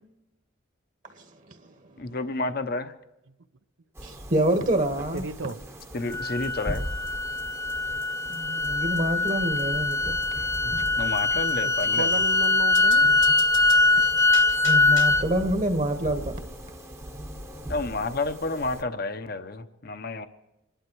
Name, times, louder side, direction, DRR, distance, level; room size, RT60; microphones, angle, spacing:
voice 1, 2.0-2.9 5.9-6.9 11.0-12.2 17.7-20.3, left 3 dB, 50° left, 0.8 m, -30 dB
sound 1, 3.9-18.8, equal, 15° right, 0.9 m, -40 dB
voice 2, 4.0-5.2 8.3-10.1 14.6-16.3, right 1 dB, 40° right, 1.2 m, -26 dB
voice 3, 5.1-5.6 10.6-10.7 11.6-13.1, right 4 dB, 75° right, 0.7 m, -34 dB
sound 2, 5.2-5.3 5.5-5.6 5.8-5.9 6.1-6.2 6.4-6.5 6.7-6.8 7.1-7.2 7.4-7.5 7.7-7.8 8.0-8.1 8.3-8.4 8.6-8.7 9.0-9.1 9.3-9.4 9.6-9.7 9.9-10.0 10.2-10.3 10.5-10.6 10.8-10.9 11.2-11.3 11.5-11.6 11.8-11.9 12.1-12.2 12.4-12.5 12.7-15.3, left 6 dB, 85° left, 2.9 m, -42 dB
sound 3, 6.1-15.3, left 2 dB, 15° left, 0.5 m, -23 dB
27.0 x 11.5 x 4.6 m
head